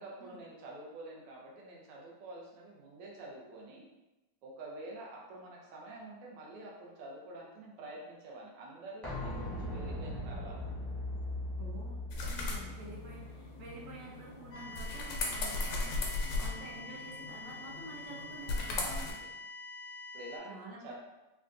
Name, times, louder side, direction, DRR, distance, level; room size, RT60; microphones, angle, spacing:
voice 1, 0.0-3.9 4.4-10.7 16.2-16.6 18.8-19.3 19.8-20.5 20.8-20.9, right 2 dB, 85° right, -3 dB, 1.4 m, -48 dB
sound 1, 9.0-14.7 15.0-15.1, left 1 dB, ahead, 0.5 m, -40 dB
voice 2, 11.6-18.8 20.5-20.9, right 2 dB, 65° right, -3 dB, 0.8 m, -49 dB
sound 2, 12.1-19.1, left 3 dB, 90° left, 1.3 m, -38 dB
sound 3, 14.5-20.4, left 3 dB, 65° left, 0.8 m, -46 dB
3.7 x 2.2 x 2.5 m, 1.0 s
omnidirectional pair, 1.9 m